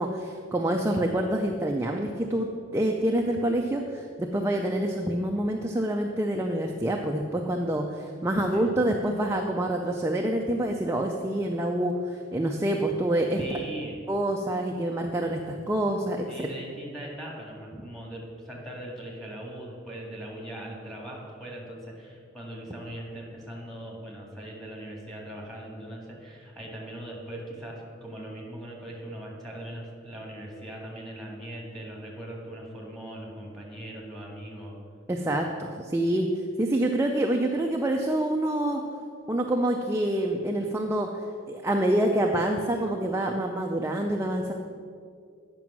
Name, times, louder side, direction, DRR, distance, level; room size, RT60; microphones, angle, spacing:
voice 1, 0.0-13.6 14.1-16.3 35.1-36.3 36.6-38.8 39.3-41.1 41.5-44.5, right 1 dB, 15° right, 1 dB, 0.5 m, -27 dB
voice 2, 13.4-14.0 16.3-34.8, right 1 dB, ahead, -3 dB, 1.9 m, -40 dB
9.1 x 6.1 x 6.0 m, 2.3 s
head